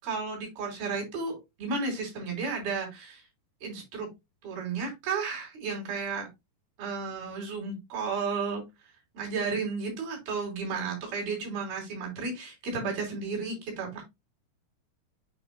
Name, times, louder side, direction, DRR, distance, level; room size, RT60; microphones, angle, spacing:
voice 1, 0.0-3.2 3.6-4.1 4.4-6.3 6.8-8.6 9.1-14.0, right 4 dB, 60° right, -1 dB, 4.8 m, -33 dB
8.7 x 5.1 x 2.2 m, 0.21 s
omnidirectional pair, 4.9 m